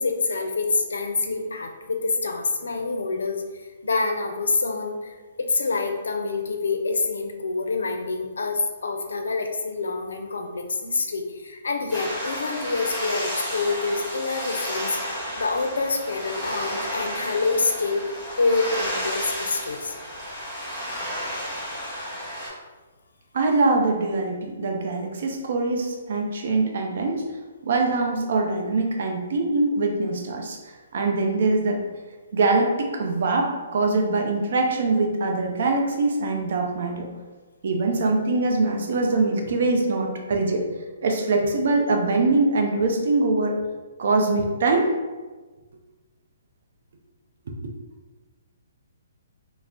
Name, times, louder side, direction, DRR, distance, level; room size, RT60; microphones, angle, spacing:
voice 1, 0.0-15.0 15.4-18.0 18.4-20.0, left 3 dB, 85° left, 4 dB, 0.4 m, -26 dB
sound 1, 11.9-22.5, equal, 5° right, 1.2 m, -32 dB
voice 2, 23.3-27.2 27.6-30.6 30.9-31.8 32.3-37.1 37.6-40.7 41.0-43.6 44.0-44.9, right 3 dB, 65° right, 2 dB, 0.5 m, -23 dB
2.4 x 2.0 x 3.5 m, 1.3 s
hypercardioid pair, 145°, 0 cm